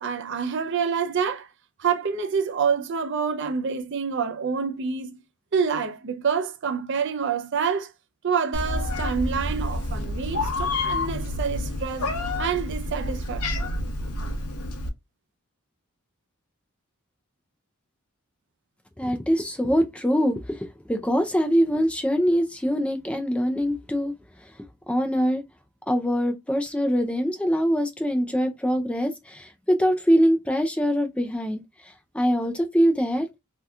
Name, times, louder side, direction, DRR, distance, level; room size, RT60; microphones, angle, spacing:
voice 1, 0.0-1.5 1.8-5.2 5.5-7.9 8.2-12.1 12.4-13.7, right 6 dB, 55° right, 0.4 m, -27 dB
Meow, 8.5-14.9, left 2 dB, 85° left, 0.8 m, -29 dB
voice 2, 19.0-24.1 24.9-25.4 25.9-33.3, equal, 5° left, 0.4 m, -23 dB
2.8 x 2.2 x 3.4 m
head